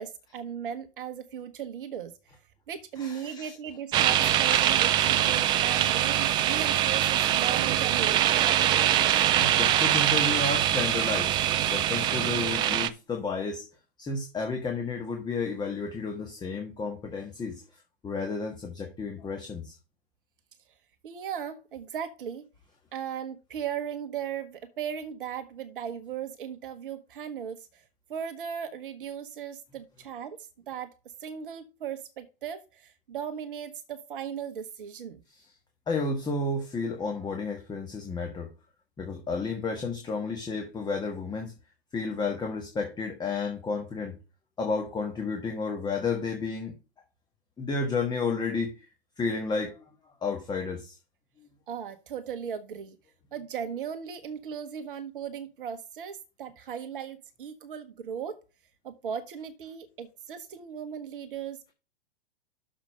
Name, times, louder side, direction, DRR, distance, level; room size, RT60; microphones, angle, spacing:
voice 1, 0.0-2.1 2.7-8.9 21.0-22.5 22.9-27.8 28.1-30.9 31.2-35.2 51.7-53.0 53.3-58.4 58.8-61.7, right 8 dB, 60° right, 8 dB, 1.1 m, -37 dB
voice 2, 3.0-3.5 9.4-11.3 11.7-13.6 14.0-17.6 18.0-19.7 35.3-35.4 35.9-38.5 39.0-41.5 41.9-44.1 44.6-46.7 47.6-48.9 49.2-49.8 50.2-51.0 51.4-51.5, left 4 dB, 15° left, 3 dB, 1.4 m, -32 dB
sound 1, 3.9-12.9, right 11 dB, 15° right, 0.3 m, -23 dB
6.6 x 5.0 x 6.3 m, 0.31 s
figure-of-eight pair, 110°, 30 cm